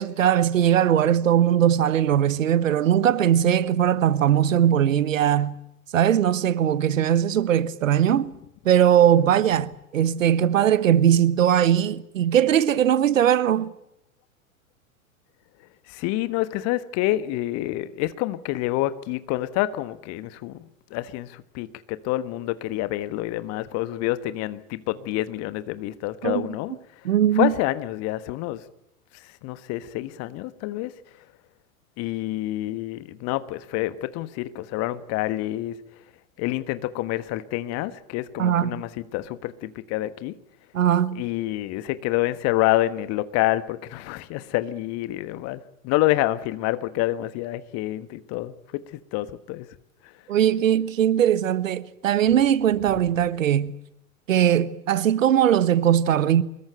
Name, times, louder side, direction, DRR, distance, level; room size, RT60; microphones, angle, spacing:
voice 1, 0.0-5.5 5.9-8.3 8.6-13.7 26.2-26.5 27.0-27.5 38.4-38.8 40.7-41.2 50.3-53.7 54.3-56.4, right 10 dB, 65° right, 1.3 m, -20 dB
voice 2, 15.9-26.8 27.3-28.6 29.2-30.9 32.0-35.8 36.4-40.4 41.1-49.7, left 16 dB, 35° left, 1.4 m, -27 dB
24.0 x 21.5 x 9.1 m
figure-of-eight pair, 95°, 42 cm